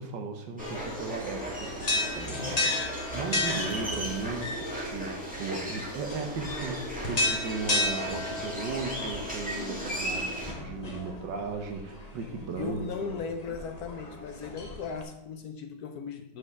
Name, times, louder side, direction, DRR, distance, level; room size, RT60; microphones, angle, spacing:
voice 1, 0.0-13.2, right 4 dB, 80° right, 5 dB, 1.5 m, -36 dB
sound 1, 0.6-15.0, left 2 dB, 25° left, 1.0 m, -34 dB
sound 2, 0.6-10.5, right 1 dB, 5° right, 1.7 m, -36 dB
voice 2, 12.6-16.4, left 6 dB, 65° left, 7 dB, 1.1 m, -37 dB
5.9 x 5.2 x 6.5 m, 0.86 s
omnidirectional pair, 2.0 m